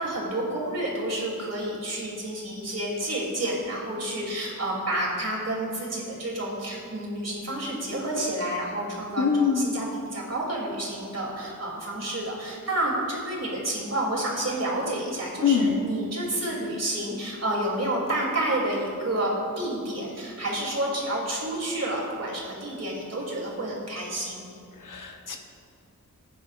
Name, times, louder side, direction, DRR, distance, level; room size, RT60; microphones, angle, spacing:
voice 1, 0.0-9.9 10.1-24.5, right 1 dB, 50° right, -3 dB, 3.1 m, -29 dB
voice 2, 9.2-9.7 15.4-15.8 24.8-25.4, left 6 dB, 70° left, 3 dB, 1.1 m, -23 dB
19.0 x 9.3 x 2.5 m, 2.3 s
wide cardioid pair, 120°, 34 cm